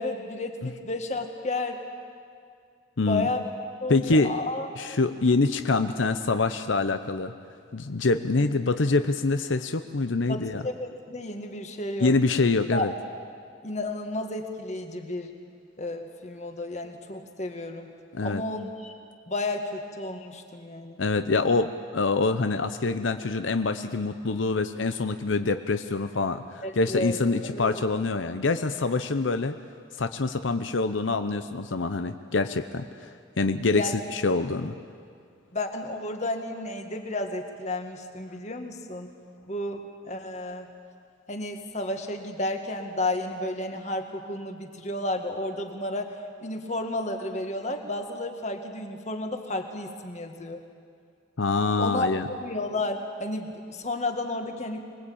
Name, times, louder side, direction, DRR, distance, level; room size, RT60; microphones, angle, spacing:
voice 1, 0.0-1.8 3.1-3.5 3.8-4.7 10.3-12.2 12.7-12.9 13.6-15.3 15.8-17.9 18.2-18.9 19.3-21.0 26.6-27.2 27.4-27.7 33.7-33.9 35.5-39.1 39.5-40.7 41.3-46.1 46.4-50.6 51.8-54.8, left 2 dB, 35° left, 5 dB, 1.9 m, -32 dB
voice 2, 3.0-3.3 3.9-4.4 4.8-7.3 7.7-10.6 12.0-12.9 18.1-18.4 21.0-29.5 30.0-34.8 51.4-52.3, left 3 dB, 85° left, 9 dB, 0.8 m, -25 dB
25.0 x 20.5 x 8.7 m, 2.2 s
head